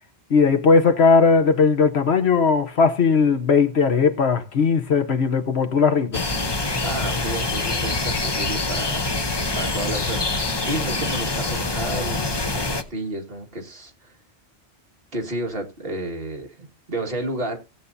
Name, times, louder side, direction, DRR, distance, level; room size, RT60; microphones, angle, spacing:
voice 1, 0.3-6.2, left 5 dB, 75° left, 1.2 m, -18 dB
sound 1, 6.1-12.8, left 3 dB, 25° left, 0.8 m, -25 dB
voice 2, 6.8-9.2 9.6-14.1 15.1-17.6, right 1 dB, 60° right, 2.1 m, -31 dB
17.5 x 8.3 x 2.7 m
omnidirectional pair, 1.1 m